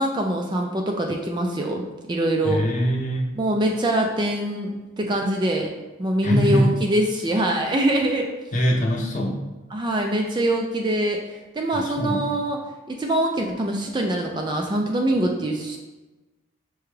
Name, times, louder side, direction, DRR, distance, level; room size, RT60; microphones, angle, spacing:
voice 1, 0.0-2.6 3.4-4.7 5.0-5.7 6.0-8.3 9.1-9.3 9.7-12.6 12.9-15.8, right 1 dB, 20° right, 2 dB, 0.3 m, -24 dB
voice 2, 2.4-3.3 6.2-6.7 8.5-9.4 11.7-12.2, equal, 35° left, 0 dB, 0.6 m, -22 dB
5.8 x 2.3 x 3.2 m, 1.1 s
head